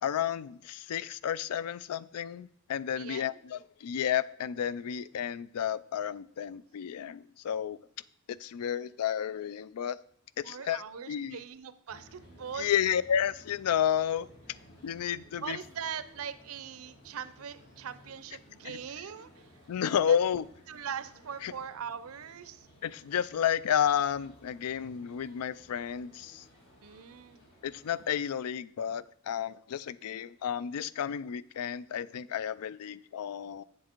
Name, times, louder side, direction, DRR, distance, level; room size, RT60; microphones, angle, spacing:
voice 1, 0.0-7.8 8.3-10.0 10.4-11.4 12.5-14.3 14.8-15.6 18.6-18.8 19.7-20.4 21.4-21.5 22.8-26.4 27.6-33.6, left 9 dB, 85° left, 19 dB, 0.3 m, -31 dB
voice 2, 3.0-3.4 10.4-12.7 15.4-19.3 20.1-20.2 20.7-22.7 26.8-27.4, right 7 dB, 70° right, 14 dB, 0.5 m, -41 dB
sound 1, 11.9-28.1, equal, 55° left, 3.5 m, -57 dB
7.4 x 7.3 x 4.4 m, 0.66 s
head